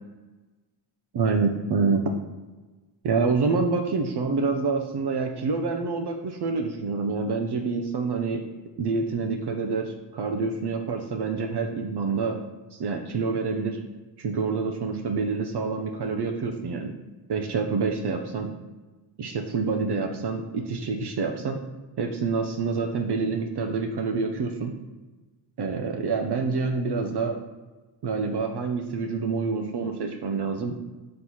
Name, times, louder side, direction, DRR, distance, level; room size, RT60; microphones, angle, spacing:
voice 1, 1.1-2.1 3.0-8.4 8.8-12.4 12.7-13.8 14.2-16.9 17.3-18.5 19.2-21.6 22.0-24.8 25.6-27.4 28.0-30.8, right 4 dB, 55° right, 4 dB, 0.6 m, -27 dB
6.1 x 3.2 x 5.5 m, 1.2 s
wide cardioid pair, 160°, 47 cm